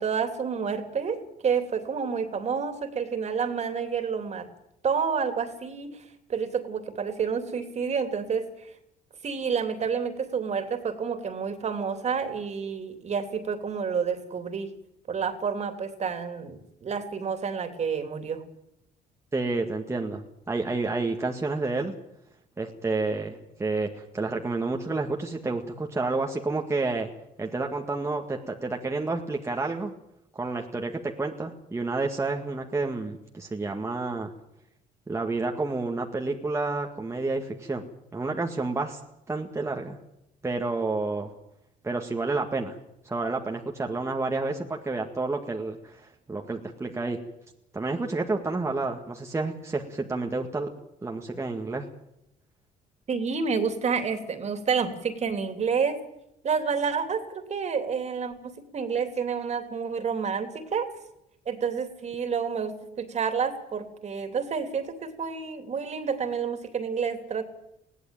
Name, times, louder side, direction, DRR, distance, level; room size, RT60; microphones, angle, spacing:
voice 1, 0.0-4.5 4.8-6.0 6.3-8.7 9.2-14.7 15.1-18.4 53.1-56.0 56.4-60.9 61.5-67.4, right 6 dB, 40° right, 8 dB, 3.1 m, -29 dB
voice 2, 19.3-22.0 22.6-27.1 27.4-29.9 30.3-34.3 35.1-37.8 38.1-39.0 39.3-40.0 40.4-41.3 41.8-42.8 43.0-47.2 47.7-50.7 51.0-51.9, right 3 dB, 15° right, 2 dB, 1.9 m, -30 dB
20.5 x 16.5 x 9.1 m, 0.84 s
cardioid pair, 110°, 17 cm